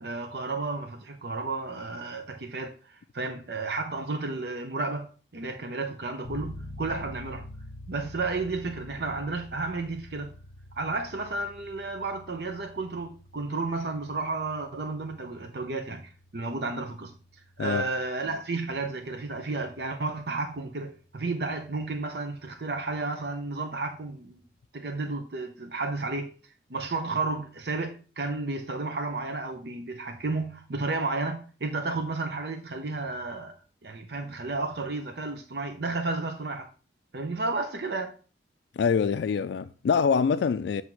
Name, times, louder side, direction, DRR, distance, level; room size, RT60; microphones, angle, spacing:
voice 1, 0.0-7.5 7.9-10.3 10.8-17.1 17.6-24.4 24.7-26.3 26.7-33.6 33.8-36.7 37.1-38.1, right 3 dB, 65° right, 0.7 m, -32 dB
sound 1, 6.2-20.7, left 1 dB, 10° left, 3.6 m, -47 dB
voice 2, 38.8-40.8, left 6 dB, 75° left, 0.3 m, -25 dB
7.8 x 2.8 x 5.8 m
head